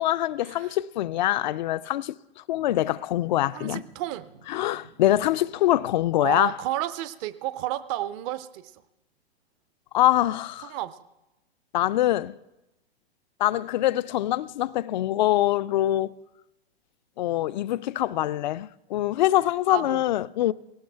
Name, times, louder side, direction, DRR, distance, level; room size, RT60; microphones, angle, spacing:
voice 1, 0.0-3.8 4.5-6.5 9.9-10.7 11.7-12.4 13.4-16.1 17.2-20.5, left 14 dB, 45° left, 0.4 m, -24 dB
Boom, 3.2-6.4, right 4 dB, 75° right, 7.5 m, -56 dB
voice 2, 3.5-4.3 6.2-8.8 10.7-11.0 19.7-20.0, right 14 dB, 30° right, 0.6 m, -31 dB
18.5 x 18.0 x 3.4 m
figure-of-eight pair, 115°, 32 cm